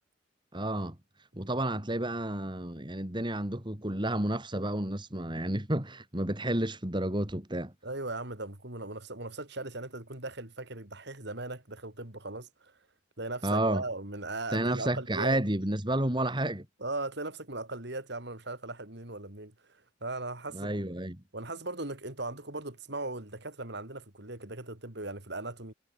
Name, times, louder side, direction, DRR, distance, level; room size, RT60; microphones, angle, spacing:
voice 1, 0.5-0.9 1.3-7.7 13.4-13.8 14.5-16.6 20.5-21.2, right 1 dB, 25° right, 2.7 m, -31 dB
voice 2, 7.8-12.7 13.2-15.4 16.8-20.7 21.3-25.7, right 2 dB, 60° right, 3.6 m, -38 dB
head